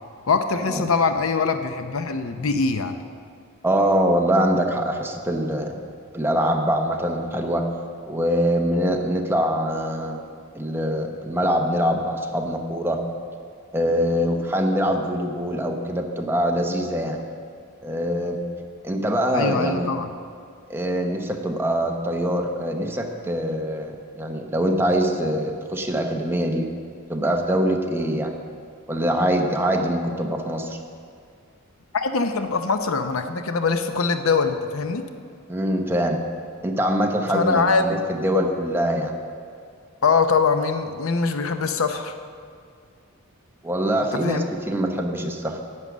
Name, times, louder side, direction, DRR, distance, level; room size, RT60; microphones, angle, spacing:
voice 1, 0.3-2.9 19.3-20.1 31.9-35.0 37.3-38.0 40.0-42.1 44.1-44.4, left 4 dB, 70° left, 8 dB, 0.7 m, -23 dB
voice 2, 3.6-5.8 6.1-7.7 8.1-10.2 10.5-13.0 13.7-17.2 17.8-18.4 18.8-19.9 20.7-26.7 27.1-28.4 28.9-30.8 35.5-36.2 36.6-39.1 43.6-45.6, equal, 10° right, 3 dB, 0.8 m, -23 dB
10.5 x 8.1 x 6.2 m, 2.3 s
head